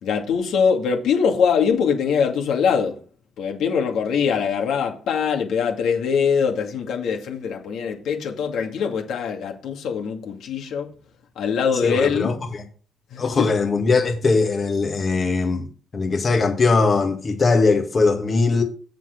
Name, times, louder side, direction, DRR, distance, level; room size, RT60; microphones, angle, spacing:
voice 1, 0.0-3.0 3.4-10.9 11.4-12.4 13.1-13.5, left 6 dB, 80° left, 2.2 m, -22 dB
voice 2, 11.8-12.3 13.2-15.7 15.9-18.6, left 3 dB, 40° left, 1.7 m, -20 dB
7.3 x 6.2 x 5.9 m
cardioid pair, 90°, 0 cm